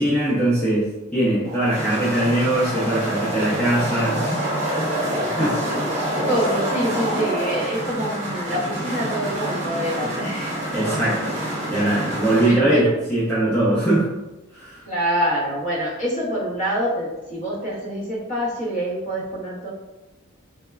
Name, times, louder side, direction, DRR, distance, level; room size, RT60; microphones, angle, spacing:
voice 1, 0.0-4.3 4.7-5.8 10.7-11.2 11.7-14.1 14.5-14.8, right 1 dB, 5° left, -9 dB, 0.4 m, -21 dB
sound 1, 1.4-12.5, right 1 dB, 30° right, 0.7 m, -26 dB
voice 2, 6.3-11.0 12.5-12.8 14.8-19.7, equal, 35° left, -5 dB, 0.7 m, -26 dB
3.1 x 2.1 x 2.2 m, 1.0 s
head